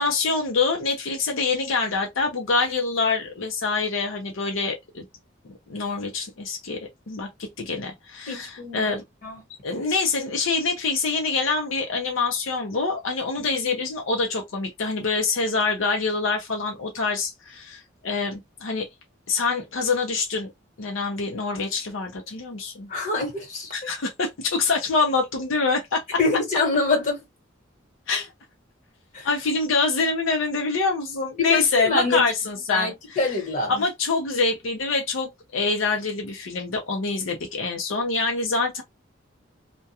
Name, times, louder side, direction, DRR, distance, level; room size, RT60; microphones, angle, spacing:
voice 1, 0.0-5.0 5.4-6.8 7.1-7.3 7.6-9.0 9.6-18.9 19.3-20.5 20.8-22.9 23.7-26.2 28.1-28.3 29.2-33.4 33.7-38.8, left 4 dB, 75° left, 0.6 m, -25 dB
voice 2, 8.2-9.0 9.2-9.4 22.9-23.7 26.2-27.2 29.1-29.3 31.4-32.2 32.7-33.7, left 3 dB, 40° left, 1.2 m, -25 dB
2.3 x 2.2 x 2.8 m
head